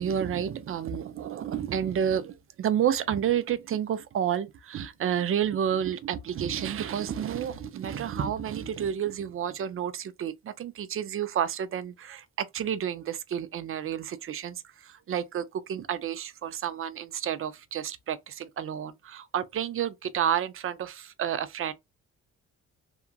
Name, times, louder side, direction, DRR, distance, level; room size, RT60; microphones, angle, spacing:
voice 1, 0.0-21.7, right 9 dB, 45° right, 0.5 m, -30 dB
2.8 x 2.3 x 2.3 m
cardioid pair, 90°, 30 cm